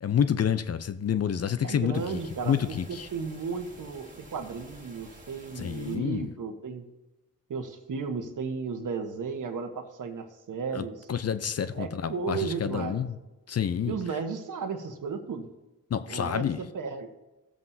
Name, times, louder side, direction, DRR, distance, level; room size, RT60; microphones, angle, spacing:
voice 1, 0.0-2.2 2.4-3.1 5.6-6.3 10.7-13.1 13.5-13.9 15.9-16.6, left 8 dB, 45° left, 0.6 m, -28 dB
voice 2, 1.6-2.5 2.9-6.8 7.5-11.1 11.7-13.0 13.9-15.5 16.1-17.1, right 5 dB, 55° right, 1.3 m, -34 dB
sound 1, 1.9-5.9, right 1 dB, 20° right, 2.4 m, -50 dB
16.5 x 7.4 x 2.8 m
supercardioid pair, 55°, 36 cm